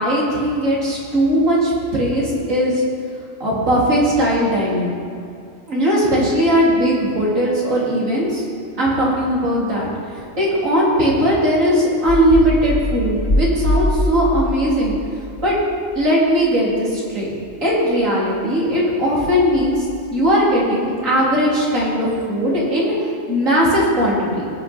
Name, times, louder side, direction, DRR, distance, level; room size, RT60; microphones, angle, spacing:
voice 1, 0.0-2.8 3.4-4.9 5.7-8.4 8.8-9.9 10.4-15.0 15.4-15.6 15.9-19.9 20.1-24.5, equal, 75° right, -5 dB, 3.8 m, -18 dB
sound 1, 10.2-10.4 12.1-16.1 16.4-16.7 17.5-17.7 19.2-20.3, left 1 dB, 45° left, 2.2 m, -23 dB
18.5 x 9.9 x 4.5 m, 2.4 s
omnidirectional pair, 1.4 m